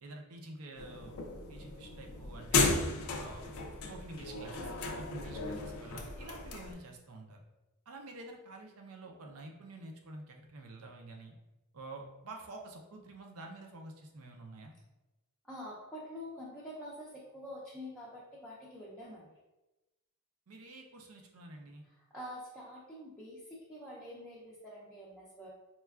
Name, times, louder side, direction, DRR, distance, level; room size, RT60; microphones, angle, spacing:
voice 1, 0.0-1.1 1.5-2.7 3.2-3.4 3.9-7.4 7.9-11.3 11.7-14.7 20.5-21.8, right 2 dB, 75° right, 2 dB, 0.5 m, -48 dB
sound 1, 0.8-6.7, left 3 dB, 75° left, 0.4 m, -35 dB
voice 2, 15.4-19.3 22.1-25.5, equal, 5° left, -8 dB, 0.5 m, -46 dB
4.2 x 2.3 x 2.3 m, 1.0 s
head